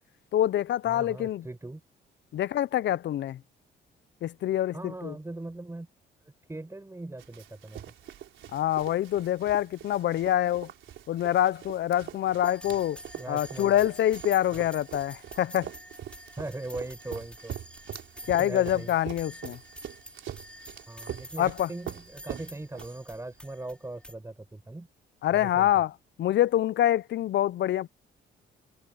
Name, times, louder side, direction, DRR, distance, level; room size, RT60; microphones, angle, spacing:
voice 1, 0.3-1.4 2.3-3.4 4.2-5.1 8.5-10.7 11.1-13.0 13.3-15.7 18.3-19.6 21.4-21.7 25.2-25.9 26.2-27.9, left 12 dB, 65° left, 0.6 m, -26 dB
voice 2, 0.9-1.8 4.7-5.9 6.5-7.8 12.6-12.7 13.1-13.8 14.5-14.7 16.3-17.5 18.4-18.9 20.8-24.9 25.3-25.7, right 2 dB, 15° right, 7.3 m, -40 dB
Run, 7.2-23.3, right 11 dB, 75° right, 4.0 m, -44 dB
sound 1, 12.4-24.1, equal, 5° left, 5.2 m, -48 dB
cardioid pair, 90°, 20 cm